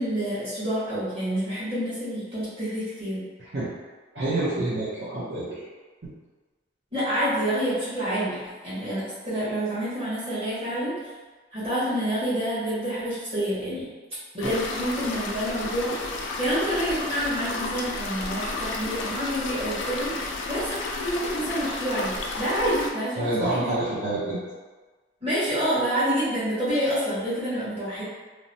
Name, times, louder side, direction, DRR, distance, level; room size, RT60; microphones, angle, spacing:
voice 1, 0.0-3.2 6.9-8.4 8.6-10.9 11.5-13.8 14.3-15.9 16.4-23.8 25.2-28.0, equal, 30° right, -12 dB, 1.3 m, -28 dB
voice 2, 4.1-5.6 14.4-14.5 23.2-24.4, right 2 dB, 55° right, -10 dB, 0.6 m, -27 dB
sound 1, 14.4-22.9, left 3 dB, 70° left, 0.3 m, -32 dB
3.0 x 2.0 x 2.6 m, 1.3 s
head